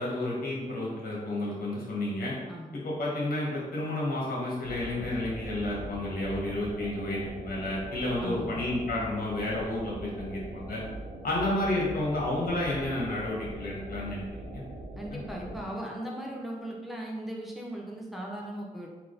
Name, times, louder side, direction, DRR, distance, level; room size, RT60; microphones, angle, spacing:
voice 1, 0.0-2.3 2.7-10.8 11.2-14.2 14.5-14.6, left 1 dB, 75° left, -4 dB, 1.4 m, -31 dB
voice 2, 2.5-2.8 8.2-8.5 15.0-18.9, right 1 dB, ahead, -2 dB, 0.8 m, -38 dB
sound 1, 4.6-15.7, right 1 dB, 85° right, 0.8 m, -41 dB
3.7 x 2.9 x 3.9 m, 1.3 s
wide cardioid pair, 115°, 15 cm